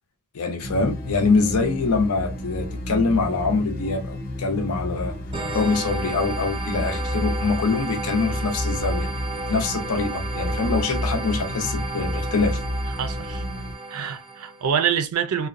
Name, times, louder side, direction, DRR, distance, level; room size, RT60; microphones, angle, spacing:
voice 1, 0.3-5.2 5.5-9.1 9.5-12.6, left 4 dB, 90° left, 0.6 m, -24 dB
sound 1, 0.6-13.7, left 1 dB, 40° left, 0.6 m, -30 dB
sound 2, 5.3-14.7, right 3 dB, 25° right, 0.5 m, -33 dB
voice 2, 13.0-13.4 13.9-15.5, right 8 dB, 85° right, 0.4 m, -25 dB
2.7 x 2.1 x 2.5 m
head